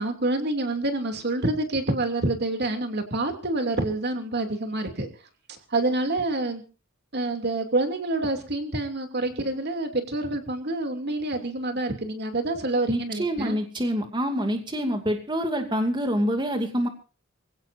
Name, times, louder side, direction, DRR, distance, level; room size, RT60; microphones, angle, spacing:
voice 1, 0.0-5.1 5.7-6.6 7.1-13.6, right 2 dB, 55° right, 5 dB, 2.8 m, -27 dB
voice 2, 12.9-16.9, equal, 25° right, 5 dB, 2.5 m, -26 dB
25.5 x 17.0 x 2.7 m, 0.35 s
head